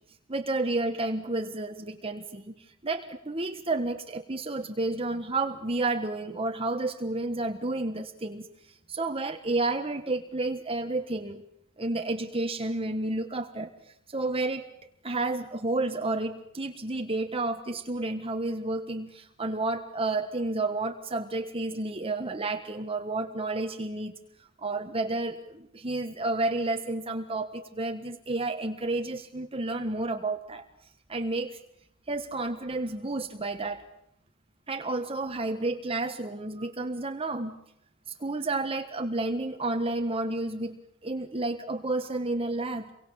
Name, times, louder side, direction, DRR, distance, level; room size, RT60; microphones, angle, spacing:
voice 1, 0.3-11.4 11.8-13.7 14.1-14.6 15.0-24.1 24.6-30.6 31.1-31.6 32.1-33.8 34.7-37.6 38.2-42.9, right 2 dB, 30° right, 6 dB, 1.5 m, -31 dB
29.0 x 24.0 x 7.2 m, 0.74 s
head